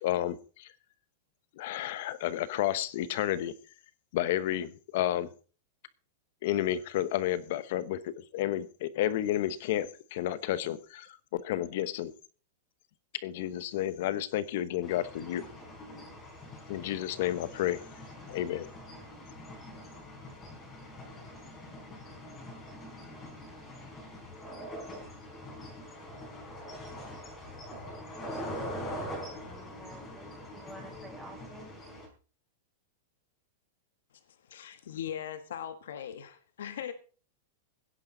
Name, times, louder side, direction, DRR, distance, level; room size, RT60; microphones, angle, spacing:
voice 1, 0.0-0.7 1.6-3.5 4.1-5.3 6.4-12.1 13.2-15.4 16.7-17.8 18.3-18.7, left 12 dB, 50° left, 15 dB, 1.0 m, -31 dB
sound 1, 14.8-32.1, equal, 15° left, 4.1 m, -43 dB
voice 2, 29.5-31.7, right 1 dB, 5° right, -2 dB, 5.2 m, -50 dB
voice 3, 34.1-36.9, left 9 dB, 85° left, 9 dB, 1.4 m, -40 dB
17.0 x 10.5 x 3.9 m, 0.38 s
supercardioid pair, 170°, 0 cm